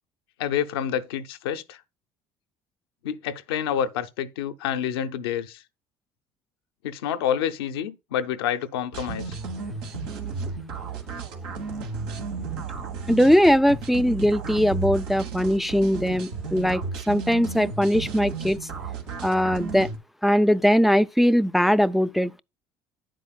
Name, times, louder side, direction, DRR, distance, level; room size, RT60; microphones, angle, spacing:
voice 1, 0.4-1.8 3.0-5.6 6.8-9.4, left 9 dB, 90° left, 0.7 m, -28 dB
sound 1, 8.9-20.0, right 4 dB, 90° right, 1.4 m, -33 dB
voice 2, 13.1-18.6 19.2-19.9 20.2-22.4, equal, ahead, 0.3 m, -20 dB
9.2 x 7.6 x 2.3 m
hypercardioid pair, 70°, 12 cm